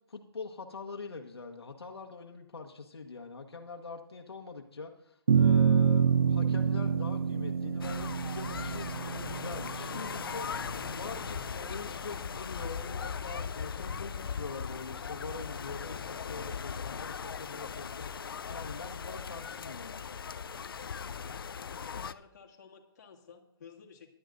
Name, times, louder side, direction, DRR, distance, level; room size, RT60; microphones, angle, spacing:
voice 1, 0.1-10.5 10.9-20.0, left 4 dB, 90° left, 2 dB, 1.4 m, -43 dB
sound 1, 5.3-11.8, right 7 dB, 70° right, 0.4 m, -28 dB
sound 2, 7.8-22.1, left 6 dB, 65° left, 0.5 m, -39 dB
voice 2, 21.8-24.1, left 6 dB, 45° left, 1 dB, 2.0 m, -54 dB
18.5 x 11.0 x 2.6 m, 0.72 s
hypercardioid pair, 160°, 13 cm